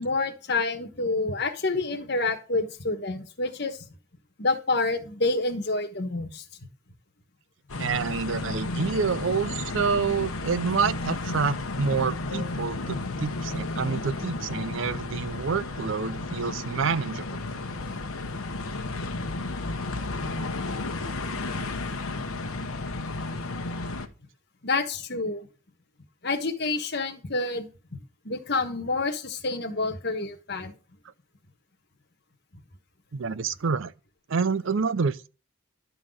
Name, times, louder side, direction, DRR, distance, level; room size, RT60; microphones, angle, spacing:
voice 1, 0.0-3.8 4.4-6.4 12.3-12.4 24.6-25.5 26.2-28.0 28.2-30.7, left 3 dB, 50° left, 1.4 m, -28 dB
sound 1, 7.7-24.1, left 2 dB, 85° left, 1.1 m, -33 dB
voice 2, 7.8-17.4 33.1-33.9 34.3-35.3, right 5 dB, 65° right, 0.5 m, -28 dB
12.0 x 4.0 x 7.7 m
head